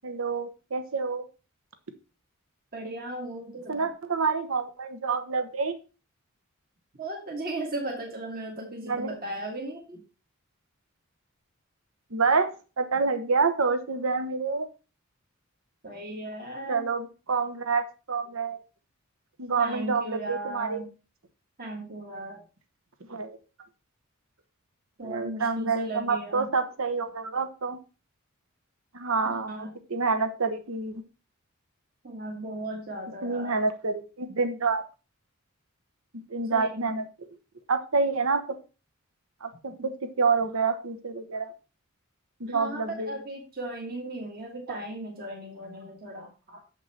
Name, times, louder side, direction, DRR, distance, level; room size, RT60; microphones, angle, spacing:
voice 1, 0.0-1.2 3.7-5.7 8.8-9.1 12.1-12.5 12.8-14.7 16.7-18.6 19.4-20.8 23.1-23.4 25.0-27.8 28.9-31.0 33.2-34.8 36.1-37.0 37.7-38.4 39.4-39.9 40.2-41.5 42.4-43.1, right 4 dB, 75° right, 9 dB, 1.1 m, -27 dB
voice 2, 2.7-3.9 7.0-10.0 15.8-16.9 19.6-20.9 21.6-22.4 25.0-26.5 29.2-29.7 32.0-33.6 36.5-36.9 39.8-39.9 42.5-46.6, right 1 dB, 45° right, -1 dB, 1.8 m, -37 dB
7.3 x 5.7 x 4.3 m, 0.33 s
head